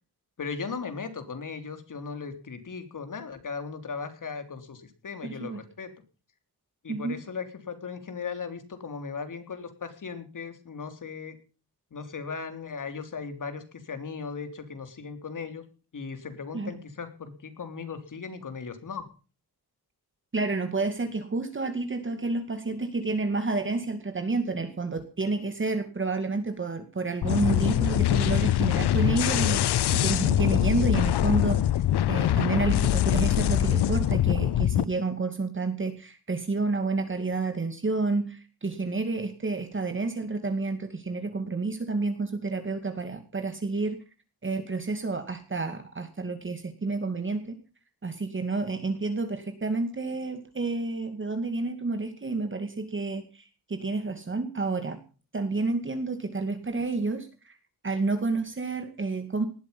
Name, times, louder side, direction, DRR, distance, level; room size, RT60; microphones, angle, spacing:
voice 1, 0.4-5.9 6.8-11.4 11.9-15.6 15.9-19.1, left 5 dB, 55° left, 8 dB, 3.6 m, -37 dB
voice 2, 5.2-5.6 6.9-7.2 16.5-16.7 20.3-31.7 32.1-44.0 44.4-47.6 48.0-55.0 55.3-57.6 57.8-59.4, right 3 dB, 30° right, 8 dB, 2.2 m, -30 dB
sound 1, 27.2-34.8, left 12 dB, 85° left, 0.8 m, -23 dB
19.0 x 13.0 x 5.4 m, 0.37 s
wide cardioid pair, 115°, 38 cm